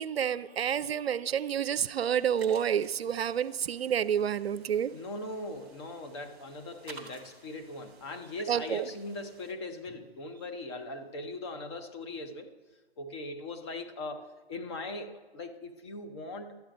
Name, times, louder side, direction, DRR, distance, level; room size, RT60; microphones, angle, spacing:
voice 1, 0.0-4.9 8.5-8.9, right 8 dB, 70° right, 15 dB, 0.5 m, -29 dB
sound 1, 1.7-9.5, right 4 dB, 5° right, 0.4 m, -54 dB
voice 2, 4.9-12.5 13.0-16.6, left 2 dB, 25° left, 7 dB, 0.7 m, -40 dB
12.5 x 8.7 x 5.1 m, 1.3 s
hypercardioid pair, 145°, 33 cm